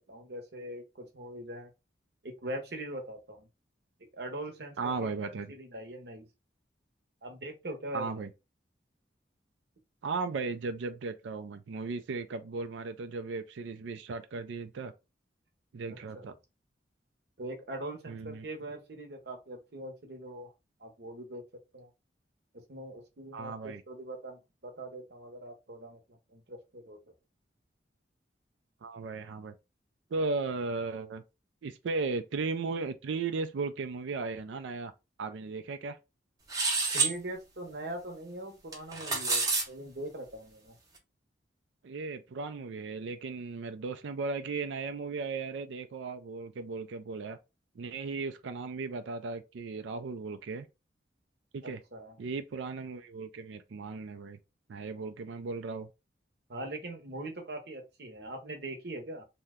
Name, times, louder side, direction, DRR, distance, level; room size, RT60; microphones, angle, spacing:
voice 1, 0.1-1.7 2.2-3.5 4.1-6.3 7.2-8.1 15.9-16.3 17.4-20.5 20.8-21.4 21.7-21.9 22.7-27.0 36.9-40.8 51.6-52.2 56.5-59.2, right 1 dB, 60° right, 0.8 m, -42 dB
voice 2, 4.8-5.5 7.9-8.3 10.0-14.9 15.7-16.3 18.1-18.5 23.3-23.8 28.8-29.5 30.1-31.2 31.6-34.9 35.2-36.0 41.8-47.4 47.8-50.7 51.5-51.8 52.2-54.4 54.7-55.9, right 4 dB, 85° right, 0.4 m, -36 dB
sound 1, 36.5-37.1 38.7-39.6, right 4 dB, 20° right, 0.7 m, -28 dB
2.8 x 2.1 x 3.5 m
head